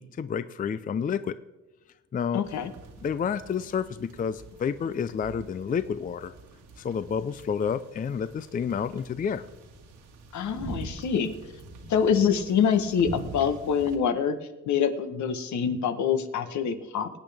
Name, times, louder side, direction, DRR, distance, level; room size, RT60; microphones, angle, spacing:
voice 1, 0.0-1.4 2.1-2.4 3.0-6.3 6.8-9.4, left 7 dB, 30° left, 14 dB, 0.4 m, -30 dB
voice 2, 2.3-2.7 10.3-11.3 11.9-14.4 14.7-17.1, left 7 dB, 70° left, 9 dB, 1.1 m, -25 dB
sound 1, 2.4-14.0, right 3 dB, 80° right, 1.9 m, -45 dB
22.0 x 8.6 x 3.4 m, 1.1 s
cardioid pair, 90°, 30 cm